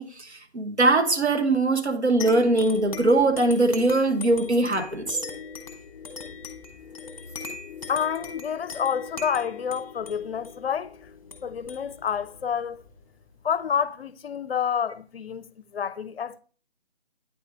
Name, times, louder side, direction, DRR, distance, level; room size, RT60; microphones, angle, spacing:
voice 1, 0.0-5.2, right 2 dB, 90° right, 1.2 m, -22 dB
sound 1, 2.2-13.3, left 4 dB, 35° left, 1.0 m, -40 dB
voice 2, 7.9-11.0 11.4-12.8 13.4-15.4 15.7-16.4, left 7 dB, 65° left, 0.5 m, -28 dB
9.0 x 3.2 x 3.6 m
figure-of-eight pair, 155°, 32 cm